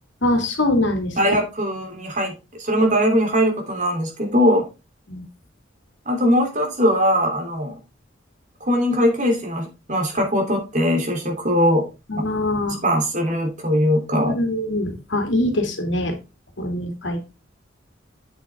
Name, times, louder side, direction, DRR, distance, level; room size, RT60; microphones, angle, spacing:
voice 1, 0.2-1.4 5.1-5.2 12.1-12.8 14.3-16.1 16.6-17.3, left 1 dB, 65° left, 5 dB, 2.2 m, -23 dB
voice 2, 1.2-4.6 6.1-7.7 8.6-11.8 12.8-14.3, equal, 40° right, 2 dB, 3.0 m, -20 dB
8.3 x 7.7 x 3.4 m, 0.27 s
head